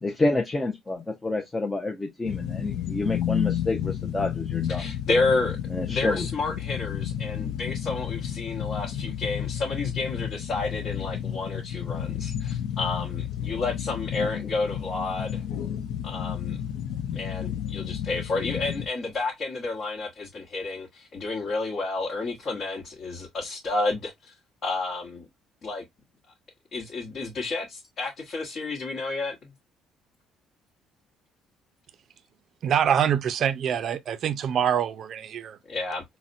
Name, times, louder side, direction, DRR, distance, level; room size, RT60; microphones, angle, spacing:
voice 1, 0.0-4.9 5.7-6.3 14.1-14.3, left 2 dB, 15° left, 0.5 m, -28 dB
sound 1, 2.2-18.9, left 10 dB, 80° left, 0.5 m, -31 dB
voice 2, 4.8-5.6 5.9-15.4 16.0-16.6 17.1-24.3 24.6-25.2 25.6-25.8 26.7-29.5 35.7-36.0, left 3 dB, 50° left, 1.1 m, -30 dB
voice 3, 32.6-35.6, right 9 dB, 55° right, 0.4 m, -25 dB
4.0 x 2.1 x 2.5 m
cardioid pair, 95°, 0 cm